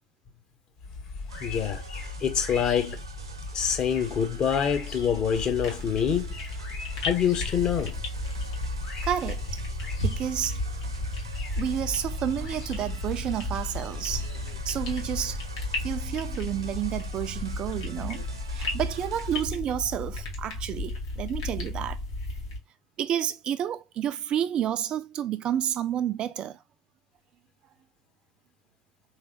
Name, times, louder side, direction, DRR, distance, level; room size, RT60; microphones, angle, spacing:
sound 1, 0.8-20.2, left 3 dB, 50° left, 1.9 m, -40 dB
sound 2, 1.3-19.4, right 3 dB, 80° right, 0.7 m, -44 dB
voice 1, 1.4-1.8 2.2-3.0 3.5-6.4 7.0-8.0, left 8 dB, 35° left, 0.9 m, -26 dB
sound 3, 5.3-22.6, left 2 dB, 65° left, 1.3 m, -34 dB
voice 2, 9.0-9.4 10.0-10.6 11.6-14.3 14.7-15.4 15.8-18.2 18.5-22.0 23.0-26.6, right 10 dB, 35° right, 0.3 m, -30 dB
3.7 x 3.2 x 2.6 m
figure-of-eight pair, 75°, 3 cm